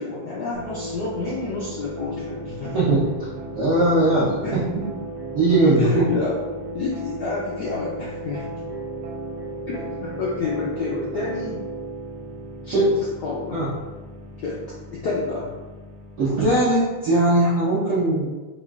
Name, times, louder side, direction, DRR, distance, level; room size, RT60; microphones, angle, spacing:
voice 1, 0.0-2.8 4.4-4.5 5.7-6.4 6.7-8.5 9.7-11.6 12.6-12.9 13.2-13.7 14.4-14.6 14.9-15.5, left 3 dB, 75° left, -6 dB, 0.9 m, -29 dB
sound 1, 0.5-17.3, right 1 dB, 80° right, 1.6 m, -35 dB
voice 2, 2.7-4.9 5.3-6.0 12.7-12.8 13.5-13.7 16.2-18.3, right 2 dB, 65° right, -11 dB, 0.8 m, -20 dB
4.8 x 2.4 x 2.3 m, 1.2 s
omnidirectional pair, 2.4 m